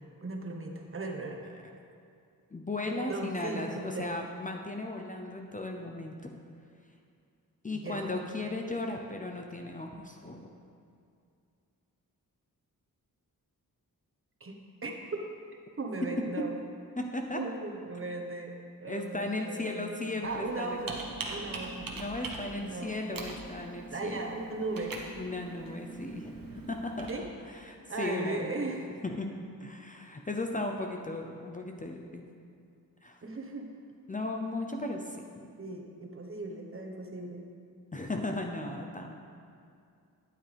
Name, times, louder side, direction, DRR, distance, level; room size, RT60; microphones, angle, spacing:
voice 1, 0.2-1.4 3.1-4.1 7.7-8.2 14.4-15.3 15.8-16.6 17.3-18.5 18.8-22.0 22.6-22.9 23.9-25.0 27.1-27.2 27.9-28.9 33.2-33.7 35.6-37.5, right 2 dB, 35° right, 1 dB, 1.3 m, -37 dB
voice 2, 2.5-6.2 7.6-10.4 17.0-17.4 18.8-20.8 21.9-24.3 25.2-27.2 27.5-28.6 29.0-29.3 29.6-32.2 33.0-33.2 34.1-35.5 37.9-39.2, left 2 dB, 20° left, 2 dB, 0.7 m, -36 dB
Computer keyboard, 20.2-27.1, right 3 dB, 70° right, 1.3 m, -42 dB
12.5 x 9.2 x 3.5 m, 2.5 s
wide cardioid pair, 95°, 35 cm